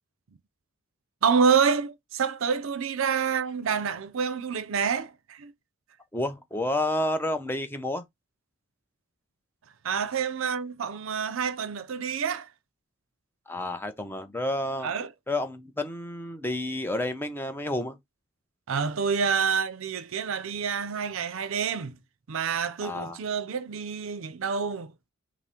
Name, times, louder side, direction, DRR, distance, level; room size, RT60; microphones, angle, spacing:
voice 1, 1.2-5.5 9.8-12.5 14.8-15.1 18.7-22.0 22.3-25.1, right 6 dB, 70° right, 0.5 m, -27 dB
voice 2, 6.1-8.0 13.5-14.9 15.3-18.0 22.8-23.2, left 1 dB, 10° left, 0.6 m, -30 dB
5.8 x 2.0 x 4.3 m
head